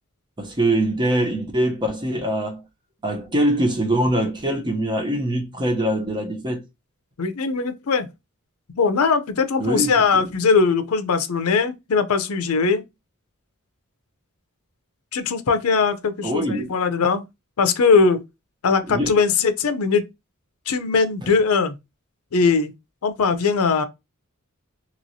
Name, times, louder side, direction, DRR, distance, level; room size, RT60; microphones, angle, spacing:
voice 1, 0.4-2.6 3.0-6.6 9.6-10.3 16.2-16.7 18.9-19.1, right 1 dB, 20° right, 0.7 m, -23 dB
voice 2, 7.2-8.1 8.8-12.8 15.1-17.2 17.6-18.2 18.6-20.0 20.7-21.8 22.3-22.7 23.0-23.9, left 5 dB, 70° left, 0.5 m, -20 dB
3.0 x 2.9 x 2.6 m
head